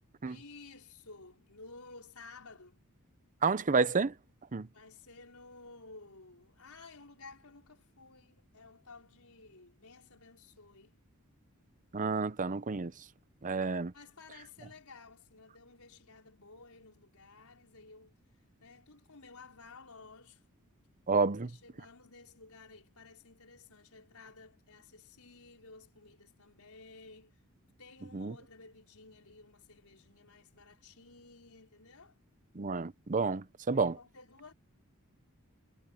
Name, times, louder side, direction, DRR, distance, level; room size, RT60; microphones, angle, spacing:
voice 1, 0.2-2.9 4.7-10.9 13.9-18.2 18.6-20.4 21.2-27.4 27.8-32.1 33.7-34.5, left 3 dB, 80° left, 5.3 m, -54 dB
voice 2, 3.4-4.1 4.5-4.7 11.9-12.9 13.4-13.9 21.1-21.5 28.1-28.3 32.6-34.0, right 4 dB, 35° right, 0.7 m, -30 dB
head